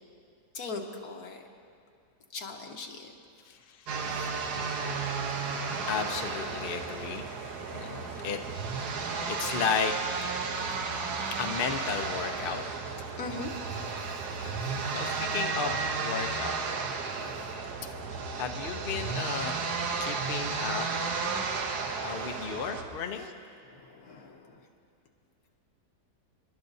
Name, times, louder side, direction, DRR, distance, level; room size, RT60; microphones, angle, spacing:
voice 1, 0.5-1.4 2.3-3.1 4.6-4.9 8.9-9.2 13.2-15.0 17.0-17.6 22.2-22.3 23.7-24.6, left 3 dB, 70° left, 2 dB, 1.6 m, -42 dB
voice 2, 3.5-13.0 13.8-14.0 14.9-16.5 18.4-19.5 20.0-21.1 22.0-23.3, left 6 dB, 50° left, 5 dB, 0.7 m, -35 dB
sound 1, 3.9-22.8, right 4 dB, 85° right, 1.5 m, -33 dB
29.5 x 12.0 x 2.7 m, 2.4 s
omnidirectional pair, 1.7 m